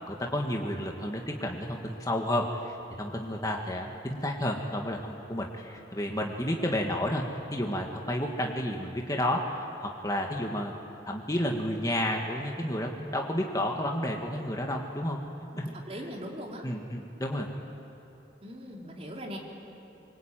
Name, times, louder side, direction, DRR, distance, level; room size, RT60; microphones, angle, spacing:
voice 1, 0.1-7.2 7.5-10.7 11.1-15.2 15.6-15.8 16.6-17.5, left 1 dB, 20° left, 1 dB, 1.8 m, -31 dB
voice 2, 15.5-16.6 18.4-19.4, equal, 35° right, -1 dB, 3.8 m, -40 dB
25.0 x 24.5 x 9.1 m, 2.8 s
head